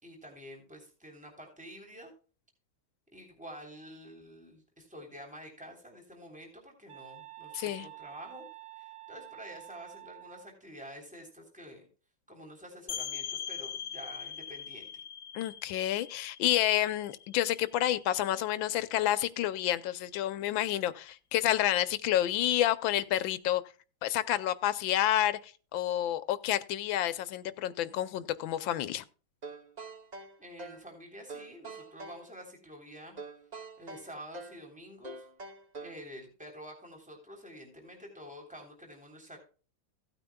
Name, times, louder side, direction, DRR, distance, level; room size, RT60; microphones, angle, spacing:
voice 1, 0.0-2.1 3.1-8.5 8.8-11.9 12.3-15.0 30.4-33.2 33.8-35.3 35.8-39.4, equal, 5° right, 3.3 m, -48 dB
sound 1, 6.9-10.5, right 17 dB, 75° right, 1.8 m, -49 dB
voice 2, 7.5-7.9 15.3-23.6 24.0-29.0, left 12 dB, 75° left, 1.4 m, -29 dB
sound 2, 12.9-18.4, left 8 dB, 60° left, 0.9 m, -42 dB
sound 3, 29.4-30.9 31.3-32.2 33.2-34.6 35.0-36.1, right 3 dB, 45° right, 0.5 m, -45 dB
17.0 x 9.0 x 2.3 m
omnidirectional pair, 2.2 m